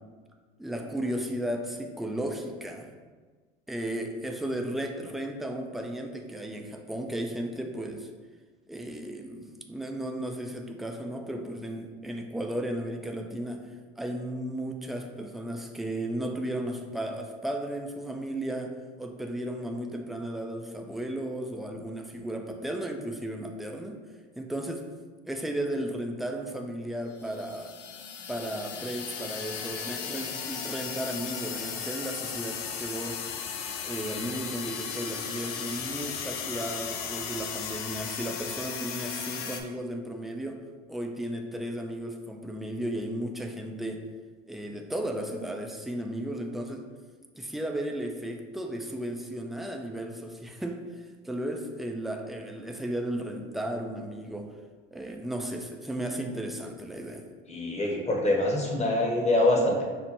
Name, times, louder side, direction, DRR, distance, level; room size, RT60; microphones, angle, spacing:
voice 1, 0.6-2.9 3.7-8.1 8.7-13.6 14.0-24.0 24.4-24.9 25.2-27.8 28.3-33.2 33.8-44.0 44.5-46.9 47.4-50.8 51.2-54.5 54.9-57.2, right 1 dB, ahead, 3 dB, 0.3 m, -34 dB
sound 1, 27.2-39.6, left 7 dB, 70° left, 0.5 m, -36 dB
voice 2, 57.5-59.8, left 1 dB, 20° left, 0 dB, 0.9 m, -24 dB
5.5 x 2.1 x 2.9 m, 1.4 s
hypercardioid pair, 80°, 30 cm